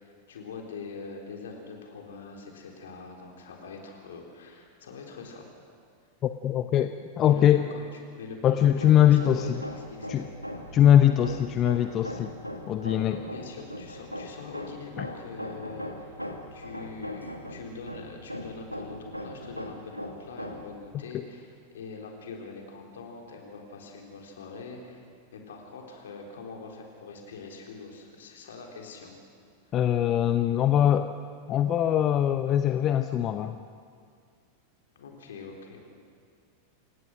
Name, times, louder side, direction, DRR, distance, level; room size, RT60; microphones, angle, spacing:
voice 1, 0.0-5.5 7.2-7.8 8.2-10.4 12.9-16.2 16.5-29.1 35.0-35.8, left 4 dB, 60° left, 1 dB, 3.9 m, -43 dB
voice 2, 6.2-7.6 8.4-9.6 10.1-10.2 10.7-12.3 12.7-13.2 15.0-15.1 29.7-31.1 31.5-33.6, left 11 dB, 30° left, 9 dB, 0.7 m, -22 dB
Hammer, 8.7-20.8, equal, 90° left, 1.8 m, -40 dB
28.0 x 17.0 x 6.4 m, 2.2 s
figure-of-eight pair, 90°, 0 cm